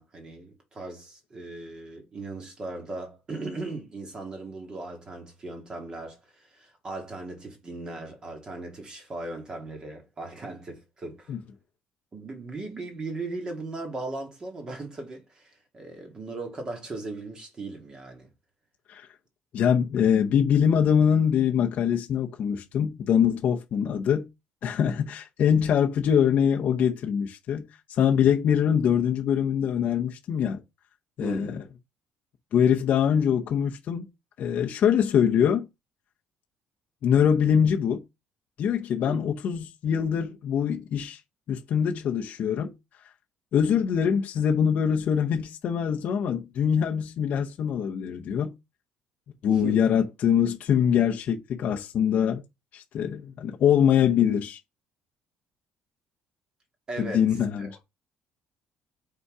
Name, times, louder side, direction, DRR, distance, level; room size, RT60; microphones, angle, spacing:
voice 1, 0.0-11.4 12.1-18.3 31.2-31.6 39.1-39.2 49.6-49.8 56.9-57.3 57.6-57.7, right 2 dB, 25° right, 1.8 m, -38 dB
voice 2, 19.5-24.3 24.6-27.7 28.0-30.6 31.2-31.6 32.5-34.1 34.4-35.7 37.0-38.0 38.6-41.2 41.5-42.7 43.5-48.5 49.4-52.4 52.7-54.6 57.0-57.8, left 8 dB, 50° left, 0.8 m, -23 dB
5.5 x 3.9 x 4.8 m
cardioid pair, 170°, 4 cm